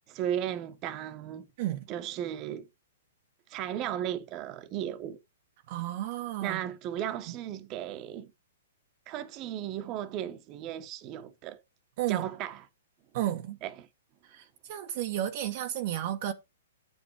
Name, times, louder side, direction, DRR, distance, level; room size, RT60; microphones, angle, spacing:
voice 1, 0.1-1.5 1.9-2.7 3.5-5.2 6.4-8.3 9.1-11.6 12.1-12.6 13.6-13.9, right 11 dB, 30° right, 1.2 m, -35 dB
voice 2, 5.7-6.6 12.0-12.3 13.1-13.6 14.3-16.3, right 12 dB, 50° right, 1.1 m, -32 dB
9.2 x 5.4 x 4.9 m
hypercardioid pair, 140°, 0 cm